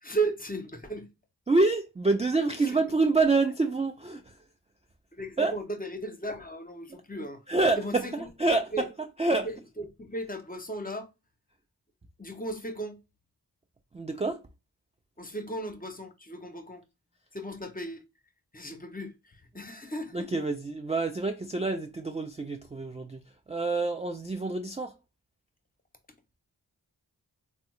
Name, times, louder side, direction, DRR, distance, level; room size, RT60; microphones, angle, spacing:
voice 1, 0.0-1.1 2.6-2.8 5.1-7.4 7.8-8.3 8.7-8.9 9.8-11.1 12.2-13.0 15.2-16.8 17.3-18.0 18.5-20.3, right 2 dB, 20° left, 0.7 m, -35 dB
voice 2, 1.5-4.3 5.4-5.5 7.5-8.9 9.2-9.5 13.9-14.4 20.1-23.2 23.5-24.9, right 3 dB, 20° right, 0.3 m, -27 dB
3.5 x 2.1 x 3.0 m
wide cardioid pair, 55°, 40 cm